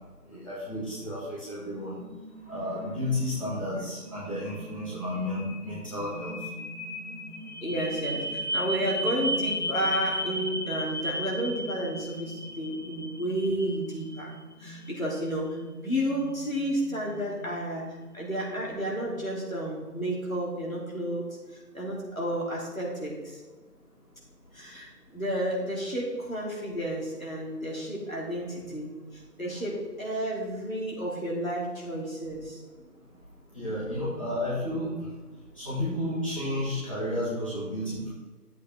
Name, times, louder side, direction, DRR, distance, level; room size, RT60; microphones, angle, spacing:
voice 1, 0.3-2.0 2.5-6.3 33.5-34.9 35.6-38.1, left 1 dB, 20° left, -12 dB, 2.3 m, -32 dB
sound 1, 1.7-19.7, equal, 45° right, 1.8 m, -37 dB
voice 2, 7.6-14.3 14.6-21.3 21.7-23.4 24.5-32.6, equal, 55° left, -4 dB, 3.1 m, -31 dB
11.0 x 8.3 x 3.8 m, 1.3 s
figure-of-eight pair, 175°, 48 cm